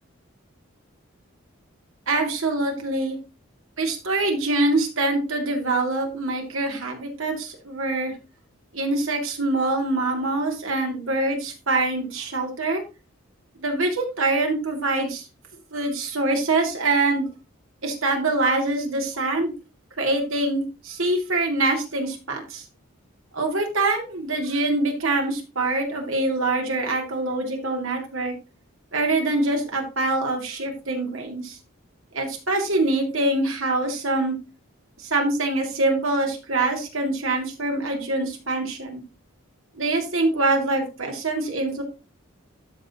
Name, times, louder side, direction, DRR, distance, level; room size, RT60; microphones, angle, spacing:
voice 1, 2.1-3.2 3.8-8.2 8.7-12.8 13.6-15.3 15.7-17.2 17.8-19.5 20.0-22.6 23.3-28.4 28.9-31.6 32.1-34.3 35.0-39.0 39.8-41.8, right 2 dB, 75° right, 2 dB, 2.6 m, -24 dB
12.5 x 6.3 x 3.0 m, 0.30 s
head